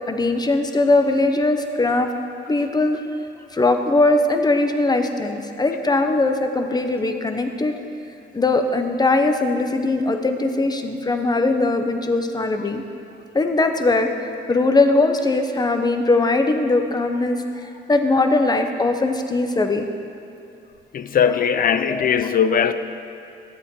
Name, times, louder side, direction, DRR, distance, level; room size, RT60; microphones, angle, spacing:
voice 1, 0.1-2.1 2.5-3.0 3.5-7.8 8.3-12.8 13.3-14.1 14.5-19.9 21.2-21.3 21.7-22.3, left 2 dB, 20° left, 6 dB, 0.9 m, -20 dB
voice 2, 20.9-22.7, left 7 dB, 45° left, 11 dB, 0.6 m, -19 dB
13.5 x 8.3 x 4.8 m, 2.5 s
cardioid pair, 90°, 20 cm